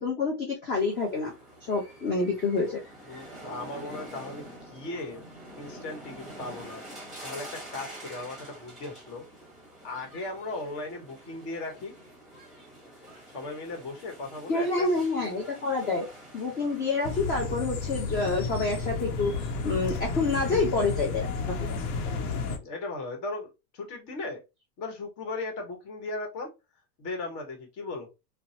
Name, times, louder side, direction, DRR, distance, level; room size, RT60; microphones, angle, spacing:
voice 1, 0.0-2.8 14.5-21.7, left 3 dB, 20° left, -1 dB, 0.5 m, -28 dB
sound 1, 0.7-17.3, right 1 dB, ahead, 1.2 m, -46 dB
voice 2, 3.0-5.3 5.6-6.8 7.2-9.2 9.8-11.9 13.3-15.0 22.0-24.4 24.8-26.5 27.0-28.1, left 2 dB, 40° left, 3 dB, 1.1 m, -37 dB
sound 2, 17.0-22.6, left 4 dB, 75° left, 0.8 m, -32 dB
2.9 x 2.0 x 2.7 m, 0.25 s
supercardioid pair, 130°, 44 cm